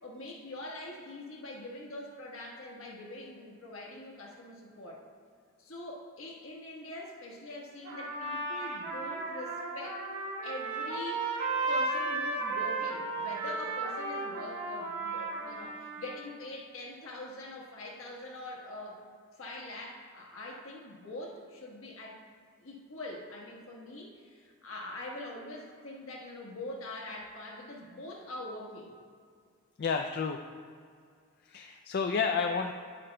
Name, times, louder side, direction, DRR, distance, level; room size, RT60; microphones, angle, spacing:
voice 1, 0.0-5.0 5.6-10.0 10.4-11.3 11.7-19.0 19.3-22.2 22.6-28.9, left 1 dB, 70° left, -2 dB, 1.4 m, -43 dB
Trumpet, 7.8-16.3, right 3 dB, 60° right, 1.7 m, -34 dB
voice 2, 29.8-30.4 31.4-32.7, left 5 dB, 50° left, 4 dB, 0.3 m, -30 dB
10.0 x 8.6 x 2.2 m, 2.2 s
head